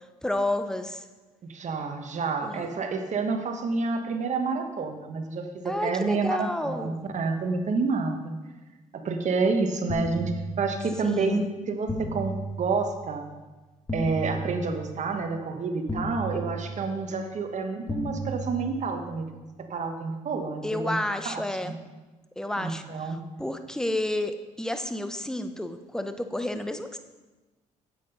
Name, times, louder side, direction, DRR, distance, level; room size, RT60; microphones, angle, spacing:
voice 1, 0.2-1.0 2.4-2.7 5.6-7.0 11.0-11.5 20.6-21.8 22.4-27.0, left 1 dB, 5° left, 8 dB, 0.9 m, -31 dB
voice 2, 1.4-8.3 8.9-10.3 10.6-13.3 13.9-19.3 19.7-21.0 21.2-21.7 22.6-23.2, right 4 dB, 50° right, 5 dB, 1.4 m, -29 dB
sound 1, 9.9-11.1 11.9-13.1 13.9-15.1 15.9-17.1 17.9-19.1, right 1 dB, 20° left, 1.5 m, -34 dB
8.3 x 7.8 x 5.5 m, 1.2 s
supercardioid pair, 60°, 15 cm